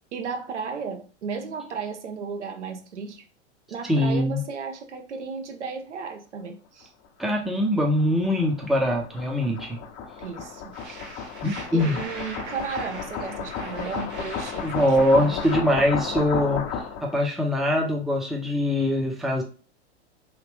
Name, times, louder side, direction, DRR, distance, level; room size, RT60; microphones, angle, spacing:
voice 1, 0.1-3.2 3.7-6.9 10.2-10.8 11.7-14.7 15.2-15.3, right 5 dB, 85° right, 0.8 m, -34 dB
voice 2, 3.8-4.4 7.2-9.8 11.4-12.0 14.6-16.6 17.0-19.4, left 1 dB, ahead, 0.5 m, -23 dB
sound 1, 7.2-17.2, left 6 dB, 35° left, 0.7 m, -33 dB
sound 2, 10.7-15.6, right 3 dB, 35° right, 0.9 m, -42 dB
3.1 x 2.4 x 3.4 m
hypercardioid pair, 110°, 34 cm